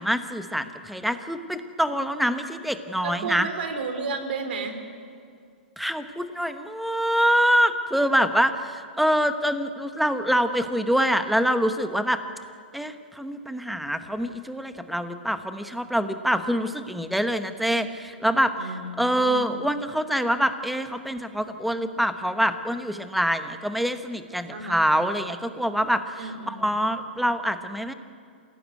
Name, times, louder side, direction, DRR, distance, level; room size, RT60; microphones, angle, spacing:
voice 1, 0.0-3.5 5.8-12.2 12.7-26.2 26.5-27.9, equal, ahead, 9 dB, 1.0 m, -25 dB
voice 2, 3.0-4.8 18.6-19.6 24.5-25.1 26.2-26.7, right 4 dB, 60° right, 7 dB, 3.9 m, -33 dB
27.5 x 17.0 x 9.4 m, 2.3 s
hypercardioid pair, 160°, 6 cm